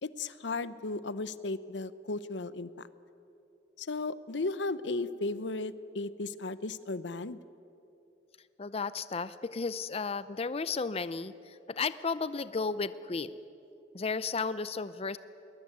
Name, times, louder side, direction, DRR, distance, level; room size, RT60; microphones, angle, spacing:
voice 1, 0.0-2.7 3.8-7.4, left 3 dB, 90° left, 16 dB, 0.8 m, -35 dB
voice 2, 8.6-13.4 13.9-15.2, left 4 dB, 35° left, 15 dB, 0.5 m, -34 dB
21.0 x 20.5 x 9.3 m, 2.8 s
head